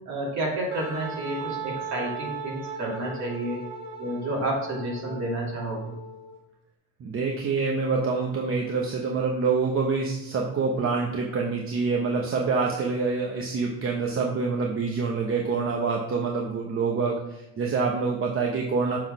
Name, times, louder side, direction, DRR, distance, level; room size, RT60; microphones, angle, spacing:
voice 1, 0.1-3.6 4.0-5.8, right 1 dB, 55° right, -3 dB, 2.7 m, -30 dB
Wind instrument woodwind instrument, 0.7-6.3, right 3 dB, 70° right, 1.5 m, -37 dB
voice 2, 7.0-19.0, right 4 dB, 40° right, 0 dB, 0.9 m, -26 dB
6.7 x 4.0 x 5.4 m, 0.91 s
cardioid pair, 130°, 34 cm